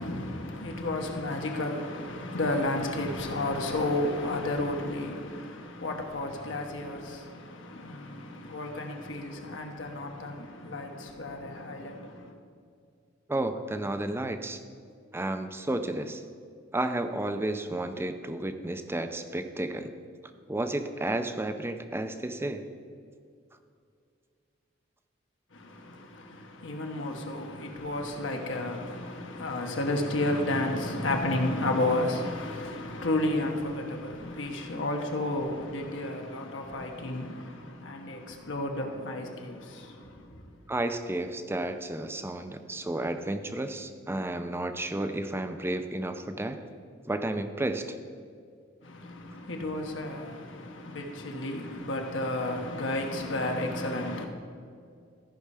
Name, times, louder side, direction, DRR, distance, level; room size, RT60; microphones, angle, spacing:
voice 1, 0.0-12.3 25.5-40.4 48.8-54.3, left 1 dB, 70° left, 1.2 m, -32 dB
voice 2, 13.3-14.6 15.1-16.2 16.7-19.9 20.5-22.7 40.7-46.6 47.1-48.0, right 1 dB, 10° right, 0.5 m, -32 dB
14.0 x 5.5 x 4.9 m
head